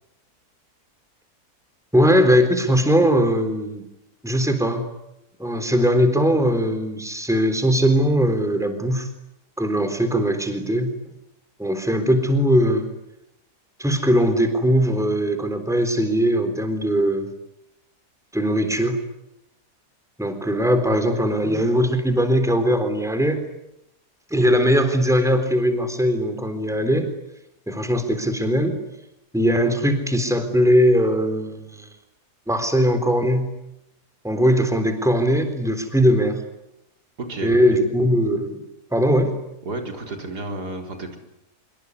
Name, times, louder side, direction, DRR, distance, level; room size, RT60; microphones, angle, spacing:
voice 1, 1.9-3.8 4.2-4.8 5.4-9.1 9.6-10.9 11.6-12.9 13.8-17.3 18.3-19.0 20.2-23.5 24.3-27.1 27.7-28.8 29.3-31.9 32.5-33.5 34.2-36.4 37.4-38.6 38.9-39.3, equal, ahead, 8 dB, 3.7 m, -20 dB
voice 2, 37.2-37.6 39.6-41.2, right 2 dB, 85° right, 4 dB, 4.6 m, -31 dB
25.5 x 24.0 x 9.8 m, 0.85 s
omnidirectional pair, 1.7 m